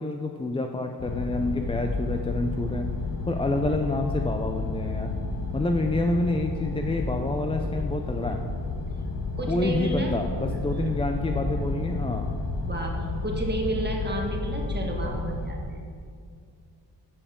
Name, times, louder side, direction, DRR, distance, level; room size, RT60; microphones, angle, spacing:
voice 1, 0.0-2.9 3.3-5.1 5.5-8.4 9.5-12.3, left 2 dB, 15° left, 4 dB, 0.4 m, -28 dB
sound 1, 1.0-15.5, left 3 dB, 70° left, 1.0 m, -31 dB
voice 2, 9.3-10.1 10.5-10.6 12.6-15.6, right 1 dB, 25° right, 0 dB, 1.4 m, -31 dB
12.0 x 7.1 x 3.6 m, 2.2 s
wide cardioid pair, 110°, 43 cm